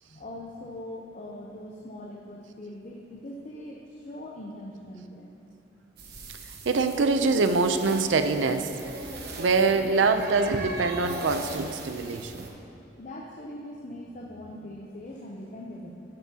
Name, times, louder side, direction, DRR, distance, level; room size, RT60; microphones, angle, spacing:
voice 1, 0.1-5.3 6.4-6.5 13.0-15.9, left 1 dB, 40° left, -1 dB, 0.7 m, -41 dB
sound 1, 6.0-12.5, right 2 dB, 60° right, 1.1 m, -40 dB
voice 2, 6.7-8.7 9.4-12.5, right 4 dB, 90° right, 8 dB, 0.5 m, -24 dB
11.5 x 8.2 x 2.8 m, 2.7 s
head